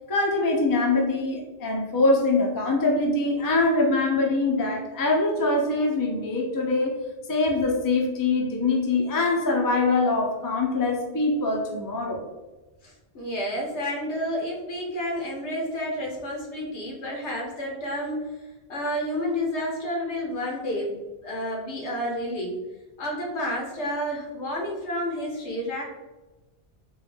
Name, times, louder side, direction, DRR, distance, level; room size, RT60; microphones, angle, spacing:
voice 1, 0.1-6.9 7.3-12.2, left 2 dB, 25° left, 0 dB, 0.4 m, -23 dB
voice 2, 12.8-18.3 18.7-20.9 21.2-22.5 23.0-25.8, equal, 80° left, -3 dB, 1.3 m, -30 dB
3.7 x 2.3 x 3.4 m, 1.1 s
omnidirectional pair, 1.1 m